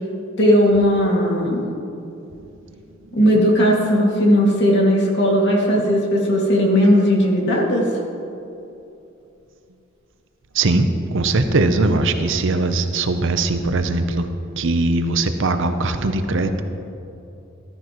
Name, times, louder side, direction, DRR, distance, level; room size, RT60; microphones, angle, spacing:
voice 1, 0.4-1.7 3.1-7.9, equal, 55° left, -2 dB, 2.3 m, -17 dB
voice 2, 10.5-14.3 14.6-16.6, right 2 dB, 65° right, 8 dB, 0.7 m, -20 dB
14.5 x 13.0 x 3.1 m, 2.7 s
head